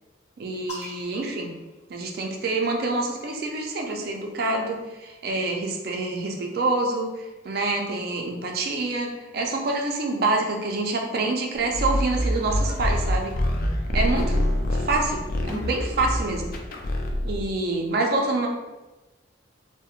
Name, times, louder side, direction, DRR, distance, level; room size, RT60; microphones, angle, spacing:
voice 1, 0.4-1.5 1.9-13.4 13.9-16.5 17.2-18.5, right 2 dB, 55° right, 1 dB, 0.4 m, -27 dB
sound 1, 0.7-2.5 3.6-5.2, left 1 dB, 35° left, 1.0 m, -45 dB
sound 2, 11.7-17.5, equal, 50° left, 0.3 m, -26 dB
2.9 x 2.0 x 2.3 m, 1.1 s
head